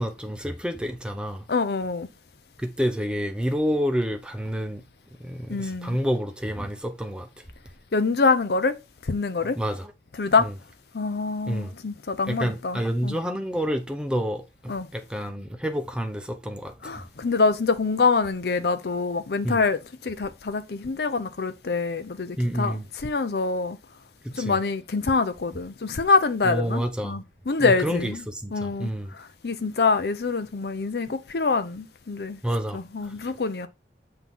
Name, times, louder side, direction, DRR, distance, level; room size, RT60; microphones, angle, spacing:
voice 1, 0.0-1.5 2.6-4.8 5.2-7.3 9.4-9.9 10.4-10.5 11.5-11.7 12.2-17.0 19.4-19.6 22.4-22.8 24.2-24.6 26.4-27.2 27.6-29.1 32.4-33.1, equal, 5° right, 0.7 m, -29 dB
voice 2, 1.5-2.1 5.5-6.0 7.9-8.8 9.1-9.6 10.2-10.5 10.9-13.2 14.7-14.9 16.8-23.8 24.3-28.2 28.5-32.4 32.7-33.7, left 4 dB, 60° left, 0.6 m, -25 dB
8.0 x 2.9 x 5.4 m
head